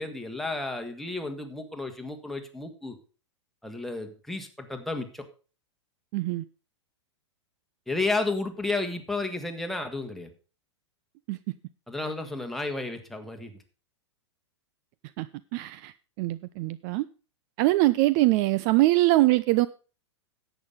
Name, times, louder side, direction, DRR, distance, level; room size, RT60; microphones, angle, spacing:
voice 1, 0.0-3.0 3.6-5.2 7.9-10.3 11.9-13.5, left 2 dB, ahead, 1.8 m, -32 dB
voice 2, 6.1-6.4 11.3-11.4 15.2-15.3 15.5-15.9 16.2-17.0 17.6-19.7, right 18 dB, 40° right, 0.4 m, -23 dB
10.5 x 8.1 x 5.4 m
figure-of-eight pair, 100°, 15 cm